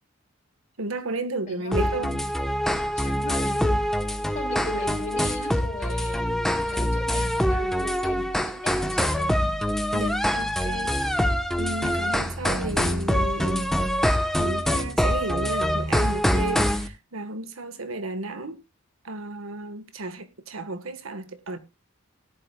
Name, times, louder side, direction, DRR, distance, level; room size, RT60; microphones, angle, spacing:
voice 1, 0.8-2.1 9.7-11.0 11.6-13.7 14.4-18.6 19.0-21.6, right 2 dB, 75° right, 1.5 m, -33 dB
voice 2, 1.5-2.3 3.0-3.8 4.3-9.1, left 1 dB, 35° left, 3.5 m, -38 dB
sound 1, 1.7-16.9, equal, ahead, 1.0 m, -25 dB
18.0 x 11.0 x 2.3 m
head